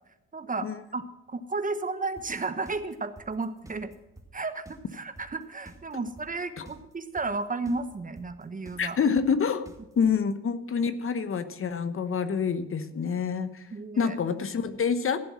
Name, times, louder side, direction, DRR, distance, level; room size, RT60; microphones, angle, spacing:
voice 1, 0.3-3.9 4.3-9.0 13.7-14.2, right 3 dB, 25° right, 11 dB, 1.1 m, -33 dB
sound 1, 2.2-10.1, right 1 dB, 10° right, 2.5 m, -49 dB
voice 2, 8.8-9.7 10.0-13.6 14.0-15.2, left 6 dB, 45° left, 12 dB, 1.1 m, -27 dB
15.0 x 8.0 x 6.2 m, 0.95 s
cardioid pair, 90°, 30 cm